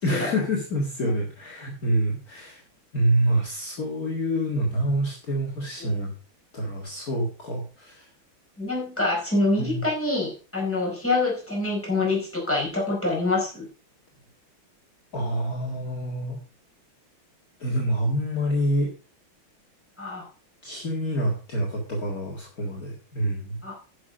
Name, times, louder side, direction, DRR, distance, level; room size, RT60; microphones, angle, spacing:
voice 1, 0.0-2.6 2.9-6.1 6.5-8.1 9.6-9.8 15.1-16.4 17.6-18.9 20.6-23.6, right 1 dB, 45° left, -2 dB, 2.3 m, -27 dB
voice 2, 8.6-13.7 20.0-20.3 23.6-23.7, left 2 dB, 5° left, -4 dB, 4.8 m, -26 dB
11.0 x 6.4 x 5.1 m, 0.37 s
omnidirectional pair, 2.3 m